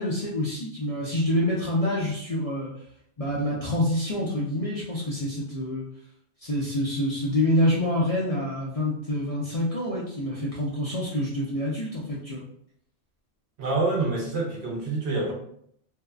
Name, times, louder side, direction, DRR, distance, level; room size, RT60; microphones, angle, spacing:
voice 1, 0.0-2.7 3.2-5.8 6.4-12.4, left 1 dB, 55° left, -5 dB, 0.4 m, -27 dB
voice 2, 13.6-15.3, right 3 dB, 65° right, -2 dB, 1.0 m, -26 dB
2.6 x 2.3 x 2.2 m, 0.67 s
omnidirectional pair, 1.2 m